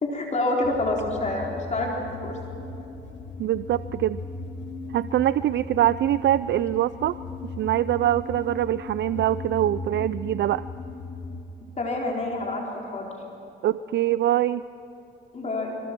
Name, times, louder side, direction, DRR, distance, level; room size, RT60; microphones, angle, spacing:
voice 1, 0.0-2.4 11.8-13.1 15.3-15.7, left 2 dB, 35° left, -1 dB, 4.2 m, -27 dB
sound 1, 0.6-11.4, left 3 dB, 65° left, 2.5 m, -37 dB
voice 2, 3.4-4.2 4.9-7.2 7.6-10.6 13.6-14.6, right 13 dB, 65° right, 15 dB, 0.5 m, -23 dB
25.5 x 25.5 x 6.1 m, 3.0 s
cardioid pair, 90°, 20 cm